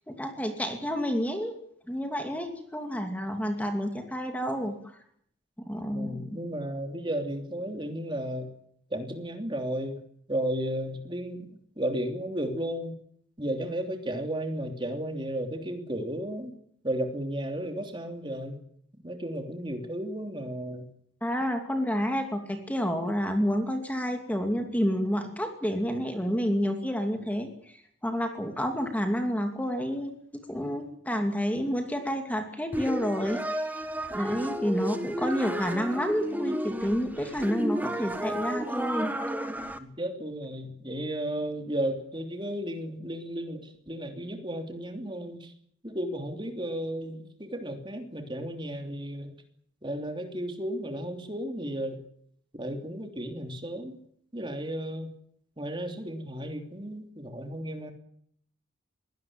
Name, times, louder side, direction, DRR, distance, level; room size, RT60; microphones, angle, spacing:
voice 1, 0.1-1.5 1.9-5.0 5.6-6.4 21.2-33.8 34.1-39.1, equal, 5° left, 5 dB, 2.5 m, -29 dB
voice 2, 5.9-8.5 8.9-10.0 10.3-11.5 11.8-13.0 13.4-16.5 16.8-18.6 19.0-20.8 39.8-45.5 45.8-49.3 49.8-52.0 52.5-54.0 54.3-55.1 55.6-57.9, right 1 dB, 25° right, 5 dB, 3.2 m, -34 dB
sound 1, 32.7-39.8, right 1 dB, 10° right, 1.5 m, -32 dB
22.5 x 17.5 x 8.9 m, 0.65 s
head